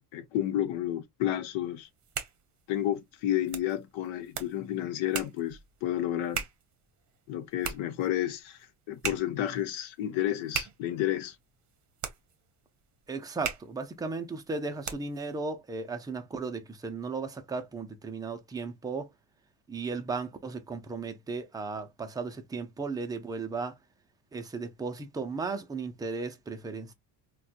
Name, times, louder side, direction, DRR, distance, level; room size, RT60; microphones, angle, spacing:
voice 1, 0.1-1.9 2.7-6.4 7.3-8.6 8.9-11.4, left 12 dB, 80° left, 0.9 m, -31 dB
sound 1, 1.8-15.3, right 7 dB, 40° right, 0.8 m, -41 dB
voice 2, 13.1-19.1 19.7-23.8 24.3-26.9, right 4 dB, 10° right, 0.4 m, -35 dB
4.2 x 2.3 x 2.4 m
cardioid pair, 140°, 46 cm